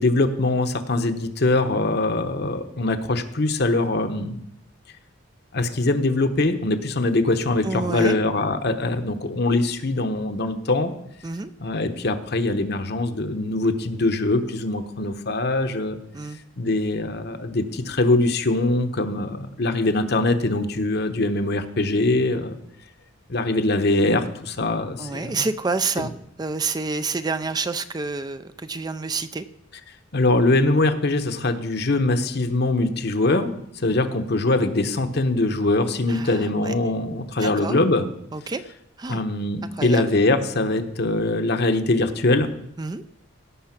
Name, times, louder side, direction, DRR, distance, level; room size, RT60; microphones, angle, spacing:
voice 1, 0.0-4.4 5.5-10.9 11.6-16.0 16.6-22.6 23.3-25.5 26.0-26.1 30.1-38.1 39.1-42.5, left 2 dB, 55° left, 7 dB, 1.0 m, -22 dB
voice 2, 7.6-8.1 11.2-11.5 16.1-16.4 25.0-26.1 26.4-29.5 36.1-36.7 37.4-37.8 38.3-38.6 39.0-39.2 39.8-40.2 42.8-43.0, right 4 dB, 20° right, 11 dB, 0.4 m, -28 dB
17.0 x 5.7 x 5.9 m, 0.75 s
head